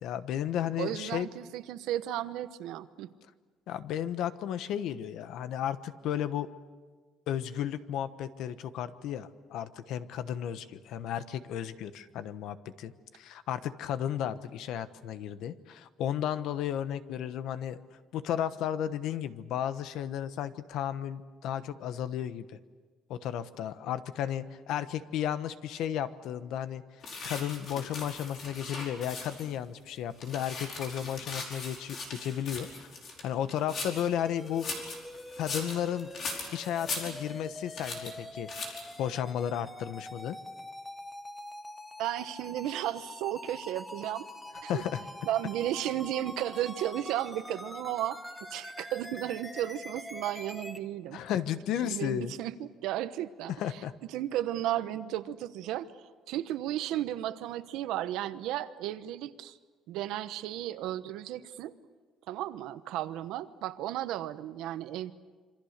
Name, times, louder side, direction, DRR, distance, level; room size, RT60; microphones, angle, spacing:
voice 1, 0.0-1.3 3.7-6.5 7.3-17.8 18.1-22.5 23.1-26.8 27.2-32.9 33.2-34.6 35.4-36.1 36.5-40.4 44.7-45.0 51.1-52.3 53.6-53.9, left 10 dB, 65° left, 12 dB, 1.1 m, -34 dB
voice 2, 0.8-3.1 42.0-44.3 44.6-44.8 45.3-51.2 51.8-53.8 54.1-55.9 56.3-59.6 59.9-61.7 62.3-65.1, right 13 dB, 85° right, 12 dB, 1.1 m, -34 dB
sound 1, 27.0-29.5 30.0-34.1 34.5-37.5 37.8-38.1 38.5-39.0, left 3 dB, 40° left, 4.9 m, -40 dB
sound 2, 34.2-50.8, left 1 dB, 5° left, 1.0 m, -45 dB
27.0 x 25.5 x 6.7 m, 1.4 s
cardioid pair, 180°, 0 cm